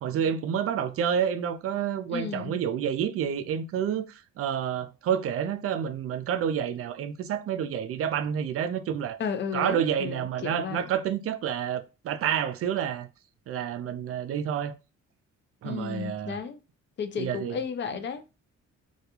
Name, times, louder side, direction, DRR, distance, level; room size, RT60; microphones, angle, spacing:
voice 1, 0.0-9.2 9.5-13.1 13.5-14.7 15.6-16.4 17.2-17.6, right 8 dB, 50° right, 0.4 m, -29 dB
voice 2, 2.1-2.5 9.2-10.8 15.6-16.6 17.0-18.4, left 6 dB, 40° left, 0.5 m, -33 dB
2.3 x 2.2 x 2.9 m
cardioid pair, 90°, 30 cm